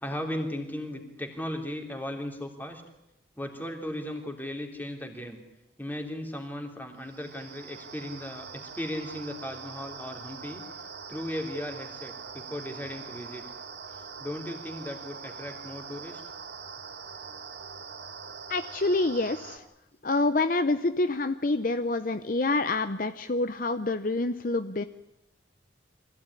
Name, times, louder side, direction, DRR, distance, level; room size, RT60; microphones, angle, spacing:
voice 1, 0.0-2.8 3.4-5.4 5.8-10.6 11.1-13.4 13.9-16.2, left 1 dB, 10° left, 3 dB, 3.3 m, -36 dB
sound 1, 7.0-19.6, right 5 dB, 65° right, 2.9 m, -43 dB
voice 2, 18.5-19.6 20.0-24.8, left 2 dB, 45° left, 10 dB, 0.8 m, -27 dB
25.0 x 16.0 x 9.8 m, 0.92 s
head